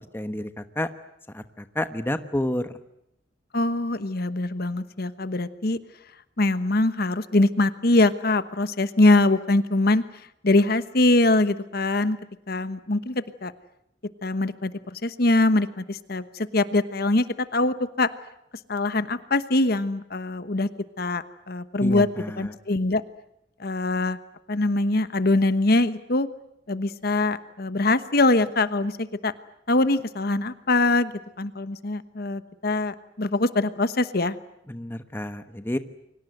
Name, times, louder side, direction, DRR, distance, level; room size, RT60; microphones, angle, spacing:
voice 1, 0.1-0.9 1.3-2.7 21.8-22.5 34.7-35.8, left 1 dB, 10° left, 10 dB, 1.2 m, -30 dB
voice 2, 3.5-5.8 6.4-10.0 10.4-12.2 12.5-13.5 14.2-17.2 17.5-18.1 18.7-20.7 21.0-22.1 22.4-23.0 23.6-24.2 24.5-26.3 26.7-29.3 29.7-31.1 31.4-34.4, left 2 dB, 55° left, 13 dB, 1.2 m, -23 dB
29.5 x 24.0 x 7.9 m, 0.80 s
head